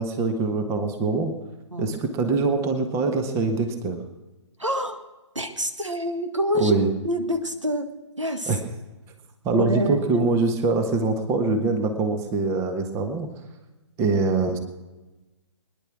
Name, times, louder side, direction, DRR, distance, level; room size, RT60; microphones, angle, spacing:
voice 1, 0.0-1.3 1.8-4.0 6.5-6.9 8.5-8.6 9.4-13.3 14.0-14.6, right 3 dB, 20° right, 7 dB, 1.4 m, -23 dB
voice 2, 4.6-5.0 5.4-6.8 7.0-7.9 8.2-8.5 9.5-10.3, equal, 85° right, 6 dB, 2.0 m, -26 dB
22.0 x 10.5 x 6.2 m, 1.1 s
figure-of-eight pair, 130°, 15 cm